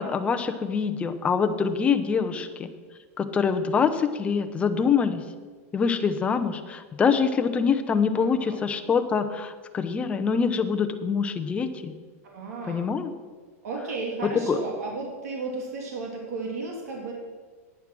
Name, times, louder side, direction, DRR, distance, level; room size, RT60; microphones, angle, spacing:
voice 1, 0.0-2.7 3.2-5.2 5.7-12.0 12.7-13.1 14.5-14.6, left 6 dB, 15° left, 8 dB, 0.7 m, -25 dB
voice 2, 8.1-8.6 12.2-12.9 13.6-17.1, right 3 dB, 80° right, 0 dB, 2.7 m, -34 dB
11.0 x 9.9 x 6.1 m, 1.5 s
supercardioid pair, 150°, 8 cm